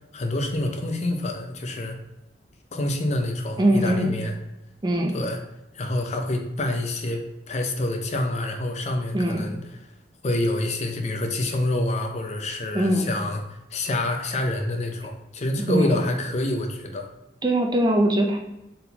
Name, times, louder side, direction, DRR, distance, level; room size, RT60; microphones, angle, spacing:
voice 1, 0.1-2.0 2.7-4.3 5.1-5.4 5.7-9.6 10.2-13.4 13.7-17.1, left 1 dB, 40° left, 4 dB, 0.5 m, -27 dB
voice 2, 3.6-4.2 4.8-5.2 9.1-9.5 12.7-13.1 15.7-16.0 17.4-18.4, right 1 dB, 25° right, 2 dB, 0.5 m, -21 dB
3.9 x 3.8 x 2.8 m, 0.93 s
head